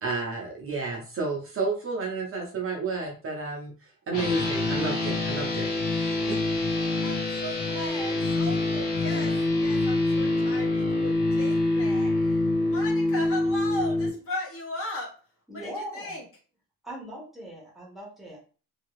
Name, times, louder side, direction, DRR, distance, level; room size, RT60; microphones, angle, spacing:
voice 1, 0.0-3.7 4.1-5.7 5.9-6.4, right 3 dB, 35° right, 0 dB, 0.6 m, -31 dB
sound 1, 4.1-14.1, left 2 dB, 85° left, 1.1 m, -25 dB
voice 2, 7.0-15.1 15.5-16.2, left 1 dB, 35° left, -2 dB, 1.1 m, -37 dB
voice 3, 15.5-16.2 16.8-18.4, equal, ahead, -4 dB, 0.9 m, -40 dB
2.8 x 2.7 x 3.0 m, 0.37 s
wide cardioid pair, 180°, 37 cm